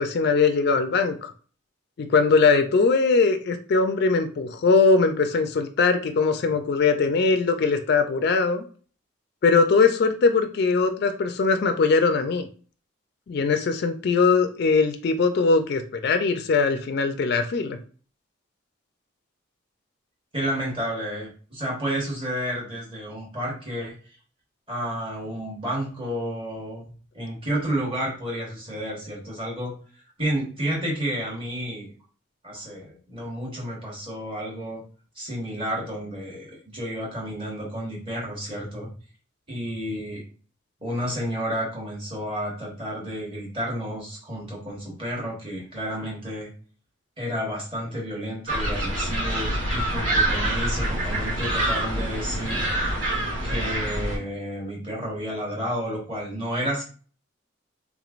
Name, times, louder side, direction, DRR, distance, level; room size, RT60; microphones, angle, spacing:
voice 1, 0.0-1.3 2.0-8.7 9.4-12.5 13.3-17.8, left 4 dB, 55° left, 7 dB, 0.3 m, -21 dB
voice 2, 20.3-24.0 24.7-29.7 30.2-31.9 32.4-34.8 35.1-38.9 39.5-40.2 40.8-46.5 47.2-52.7 53.4-56.8, equal, 25° right, -4 dB, 1.2 m, -31 dB
sound 1, 48.5-54.2, right 1 dB, 80° right, 1.6 m, -26 dB
3.5 x 3.0 x 2.4 m, 0.41 s
head